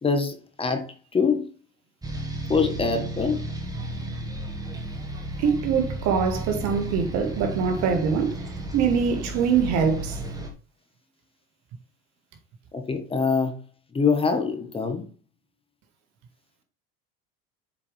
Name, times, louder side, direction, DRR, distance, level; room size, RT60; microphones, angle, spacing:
voice 1, 0.0-0.9 1.1-1.5 2.5-3.4 12.7-13.6 13.9-15.0, left 5 dB, 20° left, 1.3 m, -24 dB
sound 1, 2.0-10.5, right 1 dB, 10° right, 1.6 m, -33 dB
voice 2, 5.4-10.2, right 6 dB, 60° right, 1.8 m, -24 dB
7.4 x 4.8 x 3.4 m
supercardioid pair, 105°, 30 cm